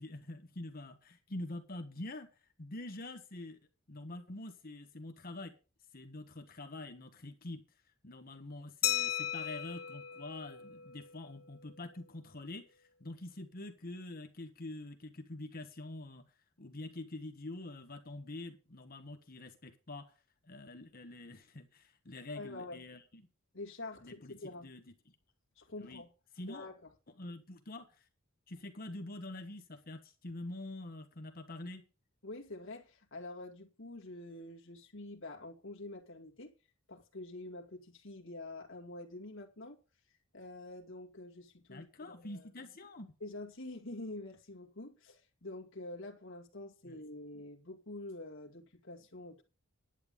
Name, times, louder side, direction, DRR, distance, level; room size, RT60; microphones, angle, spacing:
voice 1, 0.0-2.3 2.6-3.6 3.9-5.5 5.9-7.6 8.0-16.3 16.6-20.1 20.4-23.2 24.0-24.4 24.6-25.1 25.8-26.0 26.3-26.7 27.2-28.1 28.5-31.8 41.7-43.1 46.9-47.0, left 2 dB, 45° left, 1.4 m, -46 dB
Glass, 8.8-11.3, left 11 dB, 80° left, 1.6 m, -36 dB
voice 2, 22.3-22.8 23.5-24.7 25.6-26.1 26.4-26.8 32.2-36.5 36.9-39.8 40.3-42.5 43.2-49.4, left 2 dB, 65° left, 2.3 m, -46 dB
11.0 x 9.1 x 5.3 m
head